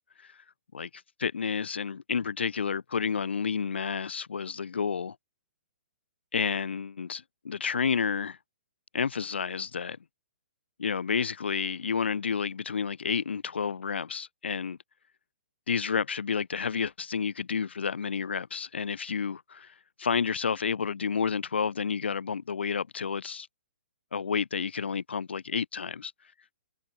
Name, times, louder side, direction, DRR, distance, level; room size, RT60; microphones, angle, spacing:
voice 1, 0.7-5.2 6.3-8.4 8.9-10.0 10.8-14.8 15.7-23.5 24.1-26.1, left 6 dB, 90° left, 4.2 m, -30 dB
hypercardioid pair, 180°, 6 cm